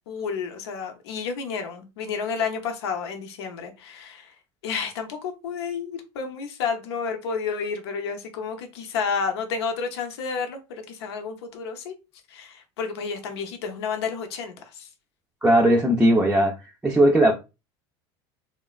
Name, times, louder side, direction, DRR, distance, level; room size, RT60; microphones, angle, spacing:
voice 1, 0.1-4.3 4.6-11.9 12.3-14.9, left 5 dB, 80° left, 0.6 m, -31 dB
voice 2, 15.4-16.5 16.8-17.3, right 1 dB, 10° right, 0.4 m, -18 dB
3.1 x 2.1 x 2.3 m
hypercardioid pair, 90°, 13 cm